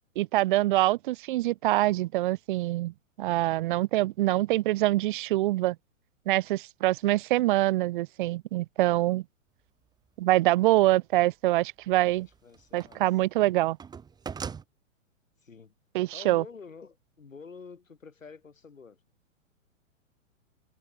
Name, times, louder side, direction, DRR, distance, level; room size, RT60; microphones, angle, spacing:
voice 1, 0.2-5.8 6.3-9.2 10.2-12.3 12.7-13.8 15.9-16.4, right 17 dB, 40° right, 0.8 m, -25 dB
sound 1, 10.1-10.2 11.8-13.2 13.4-14.6, right 6 dB, 10° right, 1.2 m, -40 dB
voice 2, 12.1-13.1 15.4-15.7 16.1-19.0, left 5 dB, 75° left, 4.0 m, -48 dB
figure-of-eight pair, 110°, 39 cm